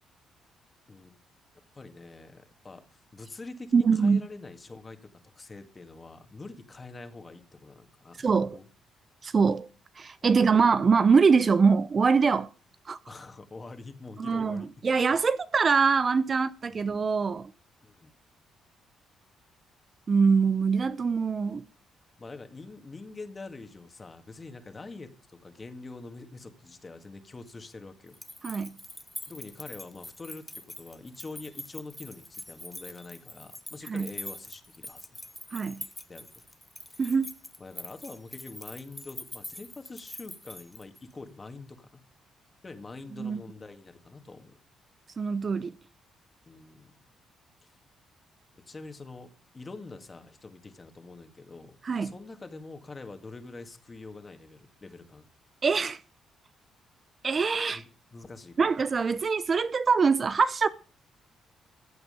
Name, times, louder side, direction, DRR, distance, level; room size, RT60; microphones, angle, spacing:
voice 1, 1.7-5.0 5.4-8.7 10.2-10.6 13.1-14.7 16.7-16.9 17.8-18.1 22.2-28.2 29.3-35.2 36.1-36.3 36.9-37.1 37.6-42.0 42.6-44.6 46.5-46.9 47.6-47.7 48.7-49.3 49.5-55.3 57.7-58.7, left 3 dB, 30° left, 2.0 m, -45 dB
voice 2, 3.7-4.2 8.2-8.6 9.2-9.7 10.0-12.5 12.9-13.0 14.2-17.5 20.1-21.6 28.4-28.8 33.9-34.1 35.5-35.9 37.0-37.3 43.2-43.4 45.2-45.7 51.8-52.1 55.6-56.0 57.2-57.8 58.6-60.7, right 5 dB, 40° right, 0.6 m, -24 dB
sound 1, 28.1-41.1, left 1 dB, 5° left, 0.9 m, -44 dB
15.5 x 8.0 x 5.1 m
cardioid pair, 90°, 0 cm